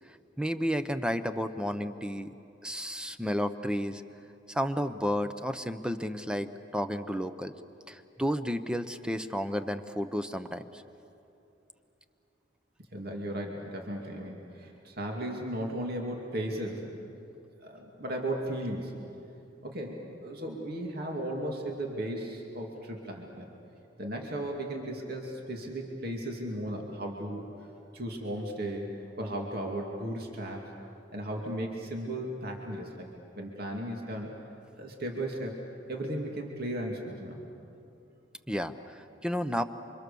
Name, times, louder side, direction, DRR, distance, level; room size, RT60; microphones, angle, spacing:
voice 1, 0.1-2.3 2.6-4.0 4.5-7.5 7.9-10.8 38.5-39.6, equal, 5° right, 10 dB, 0.8 m, -32 dB
voice 2, 12.9-16.9 17.6-18.9 19.6-23.5 24.0-27.5 27.9-28.9 29.2-30.6 31.1-33.1 33.4-34.4 34.8-35.5 35.9-37.4, right 1 dB, 55° right, 0 dB, 2.6 m, -35 dB
28.5 x 25.5 x 7.0 m, 2.8 s
head